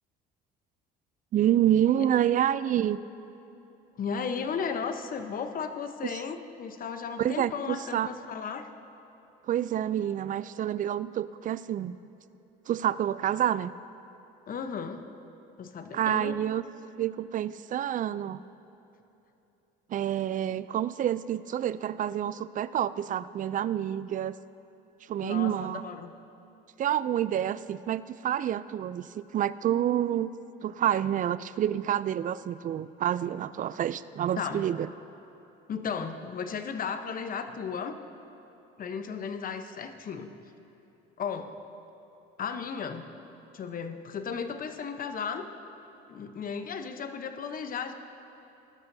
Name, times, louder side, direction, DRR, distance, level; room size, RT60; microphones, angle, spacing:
voice 1, 1.3-3.0 7.2-8.1 9.5-12.0 12.7-13.7 15.9-16.6 17.0-18.4 19.9-24.4 25.1-25.8 26.8-30.3 30.6-34.9, right 11 dB, 40° right, 16 dB, 0.4 m, -28 dB
voice 2, 4.0-8.7 14.5-15.0 15.6-16.4 25.2-26.1 34.4-34.6 35.7-38.0 38.8-40.3 41.2-41.5 42.4-43.1 43.5-45.5 46.1-47.9, left 6 dB, 45° left, 8 dB, 0.9 m, -35 dB
19.0 x 12.0 x 2.7 m, 3.0 s
supercardioid pair, 85°, 20 cm